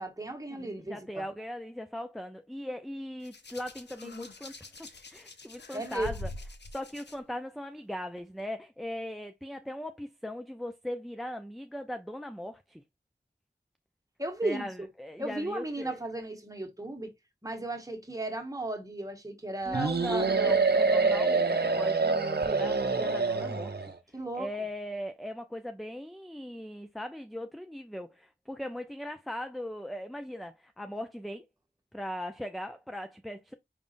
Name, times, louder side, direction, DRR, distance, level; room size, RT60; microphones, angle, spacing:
voice 1, 0.0-1.2 5.7-6.1 14.2-14.9 15.2-17.1 17.4-20.4 24.1-24.5, right 2 dB, 20° right, 1.3 m, -35 dB
voice 2, 0.6-4.5 4.8-6.3 6.7-12.8 14.4-16.0 19.6-23.7 24.1-31.5 31.9-33.5, left 1 dB, ahead, 0.4 m, -39 dB
Hands, 3.2-7.1 8.2-8.4, left 3 dB, 70° left, 0.7 m, -44 dB
sound 1, 19.7-23.9, right 4 dB, 60° right, 0.7 m, -26 dB
5.1 x 3.5 x 2.5 m
wide cardioid pair, 55°, 19 cm